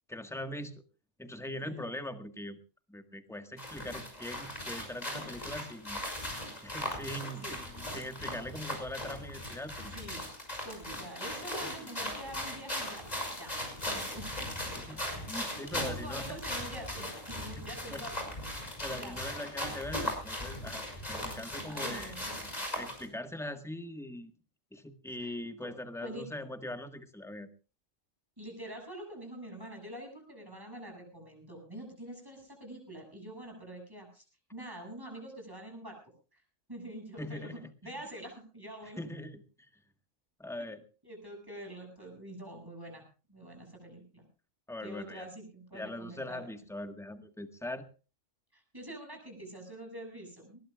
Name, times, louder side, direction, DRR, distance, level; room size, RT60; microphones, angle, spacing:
voice 1, 0.1-0.8 1.2-2.6 2.9-6.0 6.6-9.9 11.8-12.2 14.6-16.4 17.6-18.1 18.8-22.1 22.8-24.3 24.7-27.5 37.2-37.7 39.0-39.4 40.4-40.8 44.7-45.3 45.7-47.8, left 1 dB, ahead, 7 dB, 1.5 m, -41 dB
sound 1, 3.6-23.1, left 1 dB, 30° left, 5.9 m, -38 dB
voice 2, 9.9-10.2 10.6-13.0 13.4-13.6 13.9-14.4 14.9-15.0 15.3-18.3 18.9-19.2 21.7-22.3 25.2-25.4 26.0-26.3 28.4-34.2 34.5-36.0 36.3-36.4 36.7-39.0 41.0-44.2 44.8-46.5 48.5-50.6, right 1 dB, 15° right, 2 dB, 7.3 m, -46 dB
21.0 x 20.0 x 2.4 m, 0.35 s
omnidirectional pair, 1.3 m